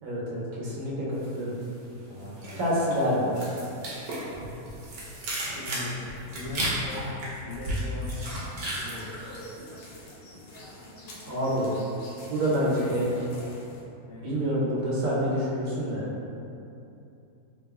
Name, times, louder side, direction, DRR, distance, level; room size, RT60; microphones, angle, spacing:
voice 1, 0.0-1.5 2.6-3.4 11.3-11.7 12.3-13.3 14.2-16.0, equal, 65° right, -7 dB, 1.1 m, -27 dB
sound 1, 1.2-1.9 2.1-10.0 10.3-10.7, right 1 dB, 85° right, 1.3 m, -34 dB
voice 2, 1.9-2.6 5.4-8.1 8.8-9.3 14.1-14.3, left 2 dB, 65° left, -9 dB, 0.6 m, -39 dB
sound 2, 8.2-13.8, left 1 dB, 90° left, 1.1 m, -46 dB
3.7 x 3.3 x 2.3 m, 2.7 s
omnidirectional pair, 1.6 m